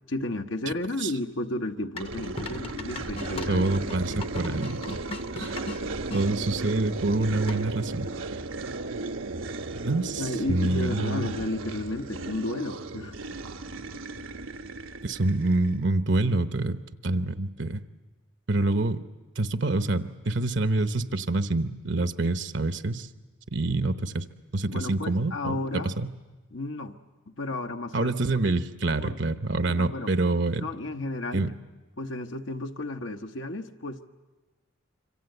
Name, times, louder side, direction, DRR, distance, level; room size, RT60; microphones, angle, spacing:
voice 1, 0.1-3.6 10.2-13.2 24.7-25.9 26.5-27.0 27.3-28.1 29.0-29.2 29.7-30.1 30.6-31.5 32.0-34.1, left 2 dB, 70° left, 5 dB, 1.1 m, -33 dB
sound 1, 2.0-6.3 7.5-7.9, left 2 dB, 30° left, 0.8 m, -39 dB
sound 2, 2.0-15.8, right 3 dB, 80° right, 1.2 m, -35 dB
voice 2, 3.5-5.0 5.3-5.6 6.1-8.4 9.7-11.4 15.0-17.8 18.5-19.0 19.4-23.1 23.5-24.3 24.5-26.1 27.9-30.7 31.3-31.5, right 2 dB, 65° right, 9 dB, 1.0 m, -27 dB
26.5 x 25.0 x 8.0 m, 1.2 s
head